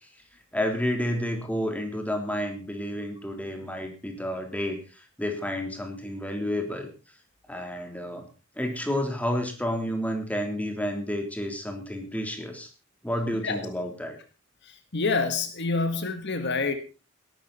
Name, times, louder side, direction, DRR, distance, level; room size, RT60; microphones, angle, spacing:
voice 1, 0.5-6.9 7.5-8.2 8.6-12.7 13.0-14.2, left 1 dB, 5° left, 4 dB, 3.4 m, -30 dB
voice 2, 14.9-16.7, left 4 dB, 55° left, 8 dB, 1.7 m, -27 dB
18.5 x 12.5 x 4.2 m, 0.33 s
head